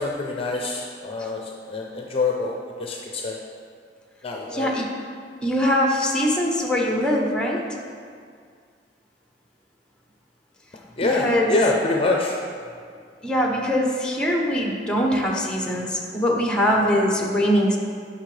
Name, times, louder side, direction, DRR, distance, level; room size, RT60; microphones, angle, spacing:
voice 1, 0.0-1.4 1.7-3.4 4.2-4.7 11.0-12.4, left 2 dB, 35° left, 0 dB, 0.6 m, -25 dB
voice 2, 4.5-4.9 5.4-7.6 11.0-11.5 13.2-17.8, equal, 5° left, 0 dB, 0.9 m, -22 dB
9.8 x 5.8 x 3.3 m, 2.1 s
head